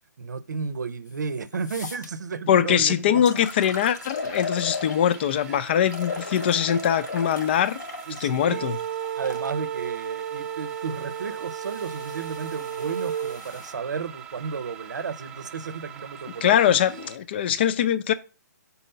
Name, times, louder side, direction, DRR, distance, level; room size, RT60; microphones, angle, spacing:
voice 1, 0.2-3.2 5.5-5.6 8.1-8.6 9.1-17.1, right 5 dB, 90° right, 0.8 m, -33 dB
sound 1, 1.1-1.2 1.6-2.1 2.8-2.9 3.3-5.3 5.9-9.5 10.3-13.7, left 4 dB, 85° left, 1.6 m, -38 dB
voice 2, 2.5-7.8 8.2-8.8 16.4-18.1, left 9 dB, 35° left, 0.5 m, -22 dB
sound 2, 3.5-17.2, right 10 dB, 15° right, 0.9 m, -44 dB
sound 3, 8.5-13.4, right 9 dB, 55° right, 0.6 m, -33 dB
5.5 x 4.1 x 5.6 m
hypercardioid pair, 160°, 9 cm